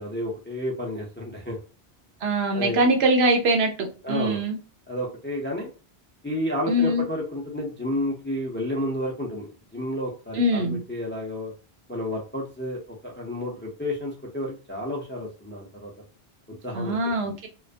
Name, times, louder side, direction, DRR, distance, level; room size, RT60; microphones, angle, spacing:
voice 1, 0.0-1.6 2.5-2.8 4.0-4.4 4.9-5.7 6.2-11.5 11.9-15.9 16.6-17.0 17.2-17.4, left 1 dB, 20° left, -2 dB, 0.3 m, -31 dB
voice 2, 2.2-4.6 6.7-7.1 10.3-10.8 16.7-17.5, right 1 dB, 85° right, 4 dB, 0.9 m, -23 dB
2.4 x 2.2 x 2.4 m, 0.34 s
omnidirectional pair, 1.0 m